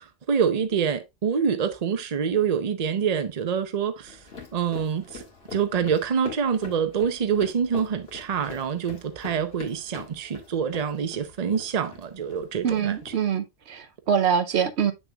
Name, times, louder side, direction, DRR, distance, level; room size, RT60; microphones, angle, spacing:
voice 1, 0.0-4.2 4.5-5.2 5.5-13.0, right 7 dB, 40° right, 0.8 m, -26 dB
sound 1, 4.1-13.1, left 4 dB, 65° left, 2.2 m, -44 dB
voice 2, 12.6-14.9, right 7 dB, 75° right, 1.0 m, -24 dB
7.7 x 6.4 x 2.3 m
omnidirectional pair, 1.1 m